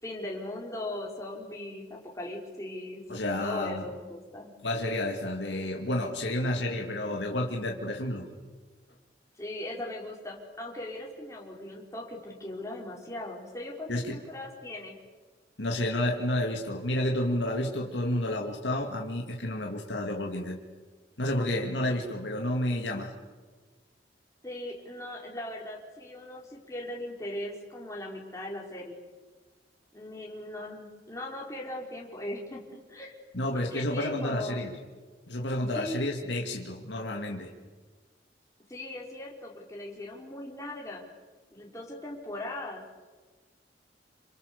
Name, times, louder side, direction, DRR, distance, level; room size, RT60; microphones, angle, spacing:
voice 1, 0.0-3.0 3.4-4.5 9.4-14.9 21.8-21.9 24.4-29.0 29.9-33.1 33.5-34.6 35.7-36.0 38.7-41.0 41.5-43.0, left 1 dB, 15° left, -2 dB, 4.8 m, -39 dB
voice 2, 3.1-3.9 4.6-8.3 13.9-14.2 15.6-20.6 21.2-23.1 33.3-34.7 35.3-37.5, left 1 dB, 80° left, 1 dB, 2.6 m, -30 dB
28.5 x 27.5 x 7.0 m, 1.4 s
head